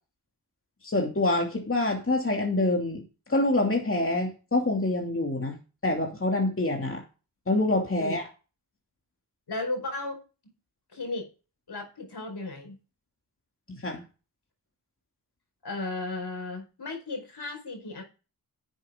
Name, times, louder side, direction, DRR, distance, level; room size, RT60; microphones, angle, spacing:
voice 1, 0.8-3.0 3.3-5.6 5.8-7.0 7.5-8.3 13.8-14.0, left 2 dB, 30° left, 1 dB, 2.6 m, -26 dB
voice 2, 9.5-10.2 10.9-11.3 11.7-12.8 15.6-18.0, left 2 dB, 65° left, 3 dB, 5.0 m, -35 dB
11.0 x 8.1 x 3.7 m, 0.32 s
cardioid pair, 60°, 43 cm